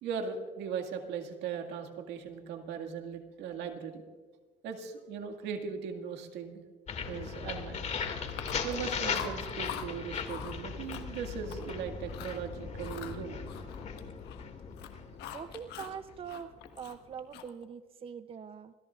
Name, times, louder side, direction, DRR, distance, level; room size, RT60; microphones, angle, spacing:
voice 1, 0.0-4.0 4.6-6.6 7.1-7.8 8.6-13.4, right 6 dB, 90° right, 3 dB, 2.0 m, -38 dB
sound 1, 6.9-16.7, left 6 dB, 45° left, 2.2 m, -38 dB
Chewing mastication, 8.3-8.8 9.1-9.9 10.3-10.6 10.9-11.7 12.1-12.4 12.8-14.4 14.7-16.0 16.3-17.6, left 10 dB, 85° left, 1.3 m, -44 dB
voice 2, 15.3-16.5 16.8-18.7, right 7 dB, 35° right, 12 dB, 0.6 m, -43 dB
26.5 x 17.5 x 2.5 m, 1.5 s
cardioid pair, 110°, 17 cm